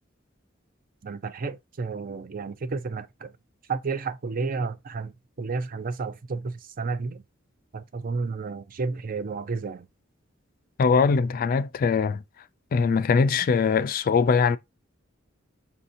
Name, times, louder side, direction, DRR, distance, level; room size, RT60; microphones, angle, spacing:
voice 1, 1.0-3.3 3.7-5.1 5.4-7.2 7.7-9.8, right 4 dB, 45° right, 0.5 m, -31 dB
voice 2, 10.8-12.2 12.7-14.6, left 5 dB, 45° left, 0.3 m, -21 dB
5.5 x 2.8 x 2.6 m
head